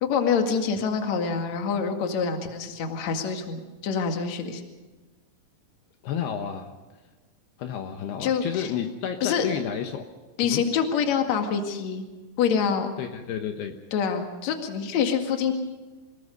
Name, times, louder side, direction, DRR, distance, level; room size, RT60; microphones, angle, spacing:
voice 1, 0.0-4.6 8.2-8.7 9.2-9.5 10.4-12.1 12.4-12.9 13.9-15.5, left 6 dB, 50° left, 4 dB, 2.9 m, -26 dB
voice 2, 6.0-6.7 7.6-10.1 10.4-10.6 13.0-13.8, left 8 dB, 75° left, 5 dB, 3.1 m, -31 dB
27.5 x 19.5 x 5.3 m, 1.2 s
omnidirectional pair, 4.9 m